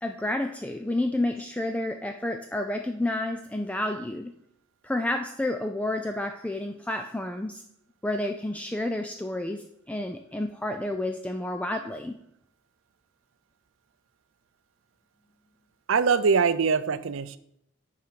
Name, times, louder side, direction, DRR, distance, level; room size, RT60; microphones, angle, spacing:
voice 1, 0.0-4.3 4.8-7.6 8.0-12.2, left 1 dB, 5° left, 6 dB, 0.3 m, -30 dB
voice 2, 15.9-17.4, right 5 dB, 70° right, 14 dB, 0.5 m, -23 dB
8.6 x 4.8 x 5.9 m, 0.76 s
head